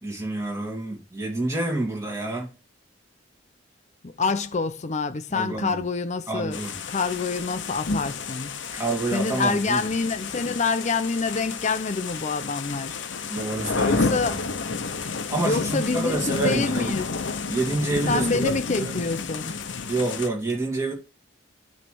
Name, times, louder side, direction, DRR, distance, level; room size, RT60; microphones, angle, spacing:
voice 1, 0.0-2.5 5.3-5.8 6.3-6.8 8.7-9.9 13.3-14.5 15.3-17.0 17.5-19.0 19.9-20.9, right 2 dB, 15° right, 2.4 m, -28 dB
voice 2, 4.0-6.6 6.9-8.6 9.1-13.0 13.8-14.5 15.4-17.1 18.1-19.6, left 4 dB, 35° left, 0.5 m, -27 dB
sound 1, 6.5-20.3, left 4 dB, 70° left, 0.8 m, -31 dB
9.2 x 3.3 x 6.0 m
head